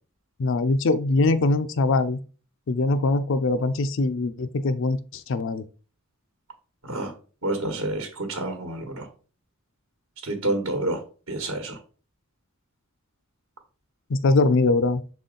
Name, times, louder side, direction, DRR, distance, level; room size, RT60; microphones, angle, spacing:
voice 1, 0.4-2.2 2.7-5.6 14.1-15.0, left 3 dB, 60° left, 0.4 m, -22 dB
voice 2, 7.4-9.1 10.2-11.0 11.3-11.8, right 2 dB, 70° right, 1.2 m, -28 dB
6.9 x 4.1 x 3.8 m
head